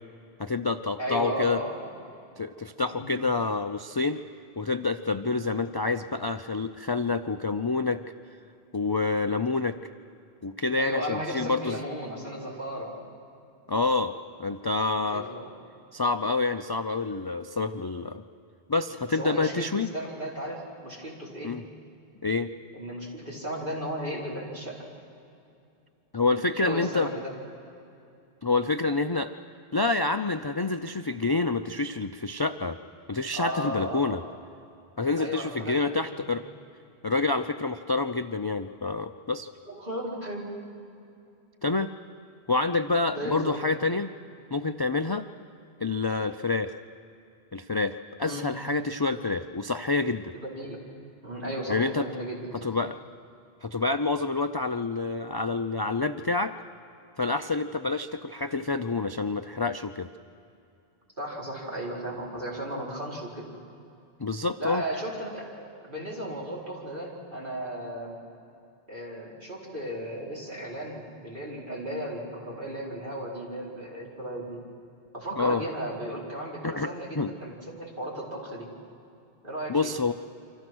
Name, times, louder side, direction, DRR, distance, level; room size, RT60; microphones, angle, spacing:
voice 1, 0.4-1.6 2.4-4.2 4.6-8.0 8.7-9.8 10.4-11.8 13.7-14.1 14.4-15.3 15.9-18.2 18.7-19.9 21.4-21.6 22.2-22.5 26.1-27.1 28.4-29.3 29.7-32.8 33.1-34.2 35.0-36.4 37.0-39.5 41.6-41.9 42.5-44.1 44.5-45.2 45.8-46.7 47.5-50.3 51.7-52.1 52.6-53.0 53.6-56.5 57.2-60.1 64.2-64.8 75.4-75.6 76.6-77.3 79.7-80.1, left 3 dB, 30° left, 8 dB, 0.5 m, -27 dB
voice 2, 1.0-1.7 2.9-3.1 10.8-13.0 15.1-15.5 19.1-21.5 22.7-24.8 26.5-27.3 33.3-34.2 35.2-36.3 39.7-40.5 43.1-43.6 48.2-48.4 50.3-50.8 51.2-52.4 61.2-63.5 64.6-68.2 68.9-74.6 75.1-78.7 79.4-79.9, equal, 50° right, -4 dB, 5.2 m, -35 dB
29.0 x 25.5 x 6.3 m, 2.6 s
omnidirectional pair, 1.1 m